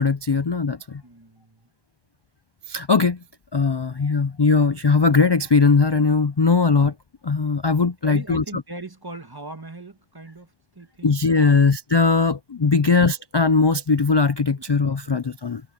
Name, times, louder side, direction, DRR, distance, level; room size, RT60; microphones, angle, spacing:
voice 1, 0.0-1.0 2.7-3.2 3.5-6.9 7.2-8.4 11.0-15.6, left 4 dB, 45° left, 0.3 m, -19 dB
voice 2, 1.0-1.7 8.0-11.1 11.4-11.6 12.7-12.9 15.0-15.1, right 2 dB, 20° right, 1.8 m, -39 dB
omnidirectional pair, 1.1 m